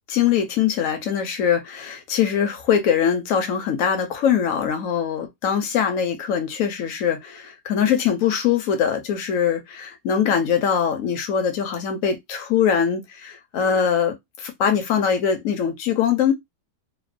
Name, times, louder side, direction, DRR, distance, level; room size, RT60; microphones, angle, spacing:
voice 1, 0.1-16.3, left 8 dB, 65° left, 0.9 m, -22 dB
3.0 x 2.0 x 2.4 m
omnidirectional pair, 1.9 m